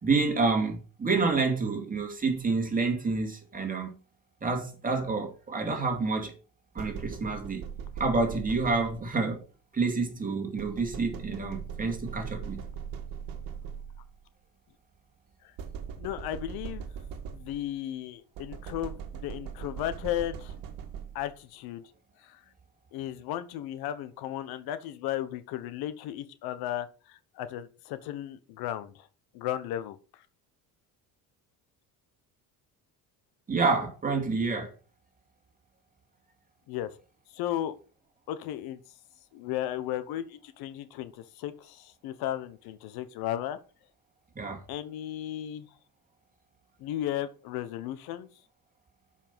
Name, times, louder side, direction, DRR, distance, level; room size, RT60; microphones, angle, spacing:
voice 1, 0.0-3.9 4.4-6.4 6.7-7.7 8.0-9.4 9.7-12.6 33.5-34.7 44.4-44.6, right 4 dB, 25° right, 2.4 m, -28 dB
sound 1, 6.8-9.2 10.6-14.1 15.6-17.8 18.3-21.4, right 7 dB, 65° right, 1.6 m, -40 dB
voice 2, 16.0-16.9 17.3-20.5 21.1-21.8 22.2-22.4 22.9-29.1 29.3-30.2 36.7-36.9 37.3-37.7 38.3-38.8 39.3-43.6 44.7-45.7 46.8-48.3, left 12 dB, 80° left, 1.1 m, -35 dB
7.0 x 5.7 x 5.6 m
cardioid pair, 120°, 36 cm